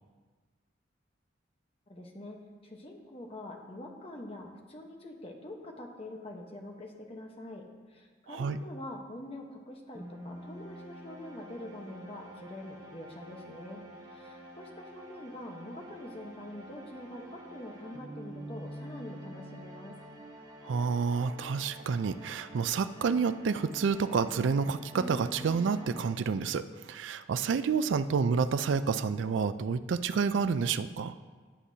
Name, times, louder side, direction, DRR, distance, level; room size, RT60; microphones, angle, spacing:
voice 1, 1.9-20.0, left 1 dB, 30° left, 2 dB, 1.1 m, -45 dB
voice 2, 8.3-8.6 20.6-31.1, right 5 dB, 75° right, 12 dB, 0.4 m, -29 dB
sound 1, 9.9-26.7, right 1 dB, 20° right, 1.4 m, -47 dB
16.0 x 8.3 x 2.8 m, 1.5 s
head